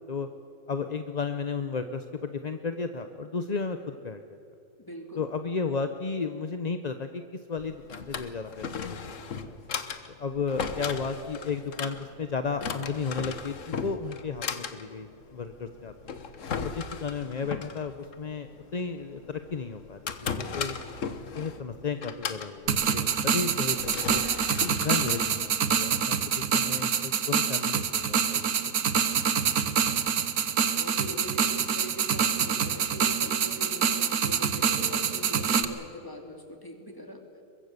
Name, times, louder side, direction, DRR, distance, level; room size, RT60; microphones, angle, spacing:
voice 1, 0.7-4.4 5.2-7.2 7.5-9.1 9.5-9.6 10.2-16.1 16.6-20.7 21.3-24.2 24.7-28.7, left 5 dB, 35° left, 8 dB, 0.7 m, -34 dB
voice 2, 4.8-5.3 30.7-37.2, equal, 15° left, 3 dB, 2.7 m, -42 dB
Drawer open or close, 7.6-26.1, left 6 dB, 55° left, 1.5 m, -37 dB
sound 1, 22.7-35.6, right 7 dB, 75° right, 1.6 m, -26 dB
23.0 x 22.5 x 6.8 m, 2.7 s
omnidirectional pair, 1.6 m